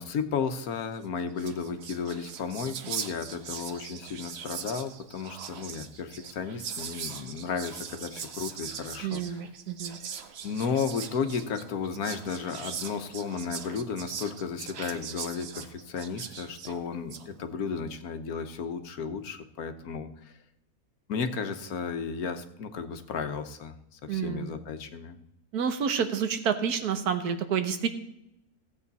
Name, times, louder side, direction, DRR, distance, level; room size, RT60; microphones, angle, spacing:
voice 1, 0.0-9.4 10.4-20.3 21.1-25.2, left 6 dB, 75° left, 8 dB, 1.4 m, -34 dB
Whispering, 1.0-1.1 1.3-17.3, right 7 dB, 55° right, 0.9 m, -40 dB
voice 2, 9.0-10.0 24.1-24.5 25.5-27.9, right 7 dB, 90° right, 8 dB, 1.5 m, -29 dB
15.5 x 7.9 x 4.1 m, 0.82 s
omnidirectional pair, 1.6 m